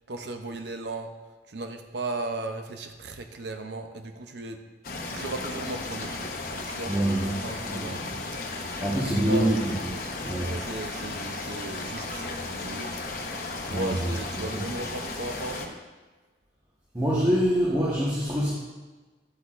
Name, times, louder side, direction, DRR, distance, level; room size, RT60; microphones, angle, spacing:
voice 1, 0.1-1.1 1.5-4.6 5.1-8.3 8.9-9.5 10.4-13.0 13.7-15.7, right 2 dB, 70° right, 6 dB, 0.6 m, -36 dB
sound 1, 4.8-15.7, left 3 dB, 50° left, 1.0 m, -35 dB
voice 2, 6.9-7.4 7.6-7.9 8.8-9.7 10.2-10.5 13.7-14.1 14.5-14.6 16.9-18.5, right 1 dB, 20° right, -6 dB, 1.2 m, -25 dB
12.0 x 8.1 x 2.5 m, 1.2 s
head